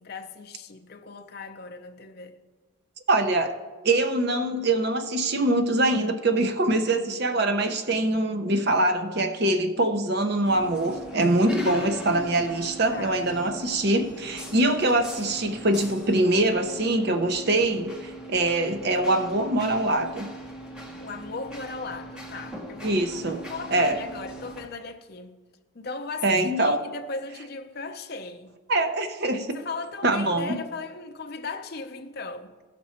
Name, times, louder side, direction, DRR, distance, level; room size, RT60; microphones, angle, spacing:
voice 1, 0.0-2.4 11.4-13.2 21.0-23.0 23.3-25.4 25.7-28.6 29.5-32.5, left 4 dB, 50° left, 0.6 m, -38 dB
voice 2, 3.1-3.5 3.8-20.3 22.8-23.4 23.7-24.0 26.2-26.8 28.7-29.6 30.0-30.6, right 2 dB, 50° right, 0.7 m, -23 dB
sound 1, 10.4-24.7, right 1 dB, 5° right, 0.9 m, -41 dB
15.5 x 6.0 x 4.3 m
head